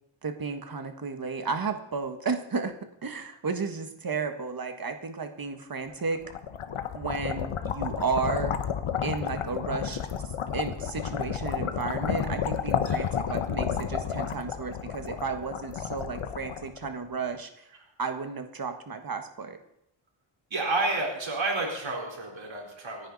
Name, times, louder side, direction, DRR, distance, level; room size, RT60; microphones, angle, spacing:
voice 1, 0.2-2.7 3.0-6.2 6.9-8.5 9.0-10.1 10.5-17.7 18.0-19.6, right 4 dB, 45° right, 6 dB, 1.5 m, -33 dB
sound 1, 6.0-17.2, left 8 dB, 90° left, 1.1 m, -31 dB
voice 2, 12.8-13.4 20.5-23.1, right 2 dB, 65° right, -1 dB, 4.4 m, -30 dB
27.5 x 10.0 x 4.1 m, 0.81 s
wide cardioid pair, 130°, 48 cm